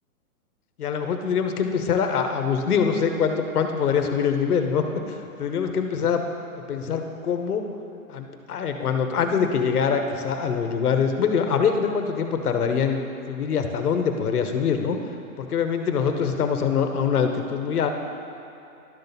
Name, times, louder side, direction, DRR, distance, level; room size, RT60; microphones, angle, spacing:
voice 1, 0.8-4.8 5.4-6.2 6.5-7.6 8.1-13.0 13.3-15.0 15.4-17.9, left 6 dB, 80° left, 6 dB, 1.1 m, -24 dB
11.5 x 4.1 x 6.9 m, 2.8 s
hypercardioid pair, 155°, 45 cm